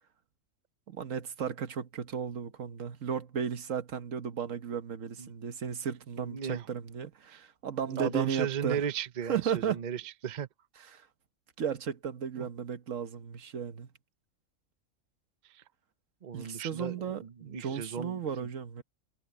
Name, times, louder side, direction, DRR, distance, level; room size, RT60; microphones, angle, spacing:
voice 1, 0.9-8.8 9.3-9.8 10.8-11.1 11.6-13.9 16.3-18.8, right 7 dB, 65° right, 1.4 m, -35 dB
voice 2, 6.2-6.7 7.3-7.4 7.9-10.5 12.4-12.5 15.5-15.6 16.2-18.2, right 7 dB, 40° right, 0.8 m, -36 dB
omnidirectional pair, 1.5 m